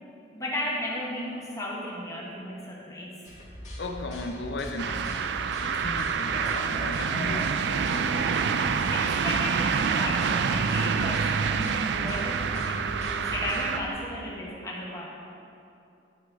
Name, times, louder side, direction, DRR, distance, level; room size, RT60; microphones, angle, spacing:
voice 1, 0.3-3.2 6.3-6.7 7.0-7.5 7.9-15.1, left 1 dB, 15° left, -4 dB, 1.2 m, -35 dB
sound 1, 3.2-13.9, equal, 40° left, 1.9 m, -41 dB
voice 2, 3.8-7.5, left 2 dB, 65° left, 5 dB, 0.6 m, -36 dB
sound 2, 4.8-13.8, right 6 dB, 70° right, 0.3 m, -27 dB
11.5 x 4.1 x 4.6 m, 2.7 s
head